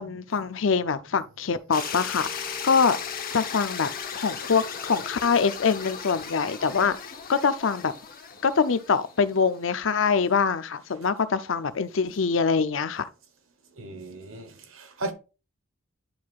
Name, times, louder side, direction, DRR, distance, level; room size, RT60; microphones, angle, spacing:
voice 1, 0.0-3.0 3.3-3.9 4.1-7.0 7.3-7.9 8.4-13.1, left 5 dB, 70° left, 0.6 m, -24 dB
sound 1, 1.7-9.7, left 6 dB, 45° left, 1.1 m, -36 dB
voice 2, 13.8-15.1, right 2 dB, 80° right, 1.2 m, -36 dB
10.5 x 4.6 x 2.4 m
head